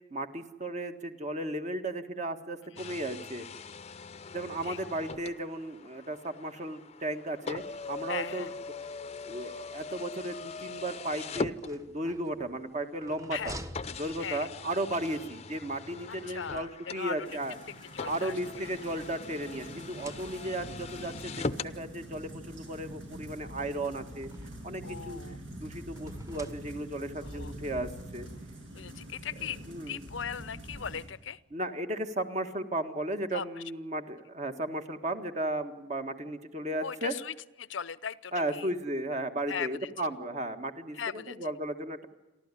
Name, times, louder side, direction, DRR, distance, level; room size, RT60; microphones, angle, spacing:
voice 1, 0.1-3.4 4.3-7.6 7.9-8.5 9.2-13.6 14.0-17.5 18.0-24.3 24.6-25.2 25.6-28.3 29.7-30.0 31.5-37.1 38.3-42.1, right 1 dB, 40° right, 7 dB, 1.7 m, -35 dB
sound 1, 2.8-12.2 13.0-13.1 13.7-21.8, left 4 dB, 35° left, 0.6 m, -41 dB
voice 2, 8.1-8.5 13.3-13.5 14.2-14.5 15.1-15.3 16.1-17.4 17.9-18.3 24.8-25.4 27.2-27.5 28.7-29.6 29.9-31.4 33.3-33.6 36.8-38.7 39.5-39.9 40.9-41.4, left 7 dB, 85° left, 17 dB, 0.7 m, -38 dB
sound 2, 11.6-14.8 16.0-17.2 18.0-19.4 19.8-20.8 21.7-21.8 22.1-22.2 23.4-24.7 26.0-27.1, right 1 dB, 15° right, 1.3 m, -49 dB
sound 3, 17.2-31.1, right 1 dB, 85° right, 6.6 m, -45 dB
29.0 x 12.5 x 9.8 m, 1.1 s
head